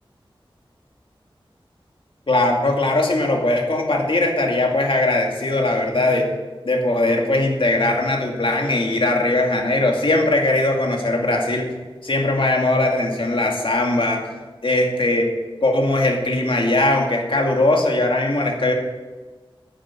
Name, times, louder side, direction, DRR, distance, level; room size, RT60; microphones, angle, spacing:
voice 1, 2.3-6.3 6.6-11.7 12.0-14.3 14.6-15.3 15.6-18.7, left 2 dB, 65° left, 1 dB, 2.3 m, -20 dB
9.4 x 8.8 x 7.5 m, 1.3 s
wide cardioid pair, 70°, 9 cm